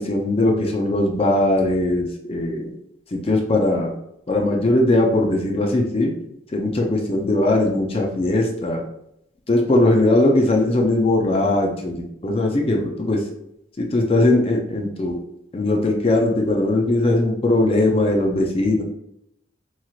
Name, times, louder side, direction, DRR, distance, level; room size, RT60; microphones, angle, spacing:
voice 1, 0.0-2.7 3.1-3.9 4.3-6.1 6.5-8.8 9.5-13.2 13.8-15.2 15.5-18.8, left 2 dB, 30° left, 1 dB, 0.4 m, -20 dB
3.0 x 2.8 x 2.4 m, 0.77 s
head